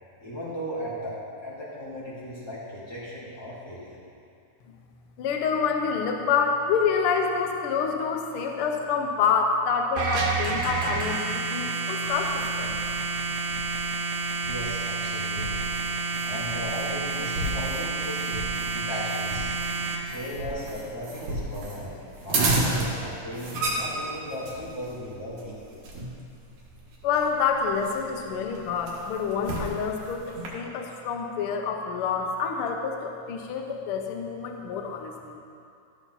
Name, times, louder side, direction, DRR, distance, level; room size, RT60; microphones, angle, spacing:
voice 1, 0.2-1.2 1.4-4.0 14.5-15.7 16.2-19.5 19.9-25.8, equal, 10° left, -9 dB, 1.9 m, -37 dB
voice 2, 5.2-12.7 27.0-35.3, left 6 dB, 90° left, 2 dB, 1.2 m, -27 dB
sound 1, 10.0-20.0, right 4 dB, 75° right, 2.4 m, -29 dB
sound 2, 12.0-30.5, right 2 dB, 60° right, 2.8 m, -34 dB
13.5 x 7.2 x 4.1 m, 2.5 s
omnidirectional pair, 3.7 m